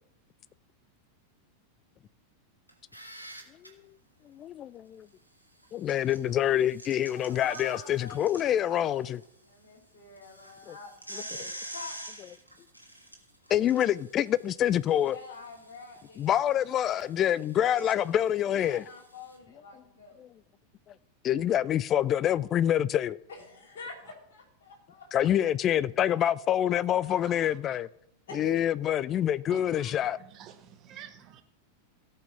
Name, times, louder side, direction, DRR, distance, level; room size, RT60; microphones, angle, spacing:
sound 1, 2.7-3.7 5.6-9.2 9.6-9.7 10.2-19.4, right 1 dB, 90° left, 1.5 m, -47 dB
voice 1, 4.3-5.1 5.7-9.2 10.7-10.8 13.5-15.2 16.2-18.8 20.2-20.3 21.2-23.2 25.1-27.9 28.3-30.2, left 11 dB, 30° left, 0.4 m, -26 dB
voice 2, 7.1-9.1 9.5-12.0 15.0-16.5 18.4-20.2 23.3-25.3 26.0-26.1 28.3-28.6, left 3 dB, 55° left, 2.5 m, -46 dB
voice 3, 27.2-27.8 29.5-31.4, right 9 dB, 35° right, 1.1 m, -49 dB
17.0 x 5.7 x 4.1 m
figure-of-eight pair, 90°, 0 cm